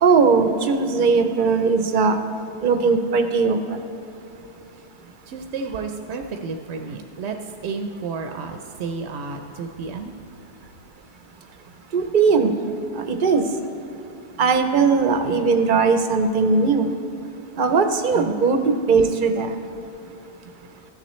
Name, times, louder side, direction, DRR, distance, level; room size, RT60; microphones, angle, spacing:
voice 1, 0.0-2.2 2.6-3.8 11.9-12.5 12.9-13.4 14.4-16.9 17.6-19.5, right 4 dB, 55° right, 7 dB, 0.7 m, -19 dB
voice 2, 5.3-7.4 7.6-10.1 18.2-18.3, right 4 dB, 85° right, 5 dB, 0.9 m, -31 dB
13.5 x 7.0 x 3.1 m, 2.9 s
omnidirectional pair, 1.1 m